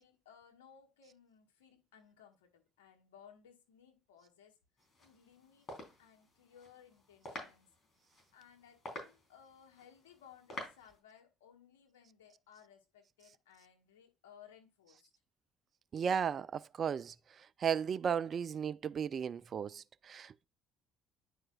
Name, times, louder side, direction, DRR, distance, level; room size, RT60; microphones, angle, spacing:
voice 1, 0.0-4.6 5.0-5.7 6.0-7.7 8.3-15.1, left 8 dB, 85° left, 1.3 m, -61 dB
sound 1, 4.8-11.0, left 2 dB, 35° left, 3.6 m, -50 dB
voice 2, 15.9-20.4, right 7 dB, 45° right, 0.4 m, -35 dB
9.9 x 4.7 x 2.3 m
hypercardioid pair, 60°, 0 cm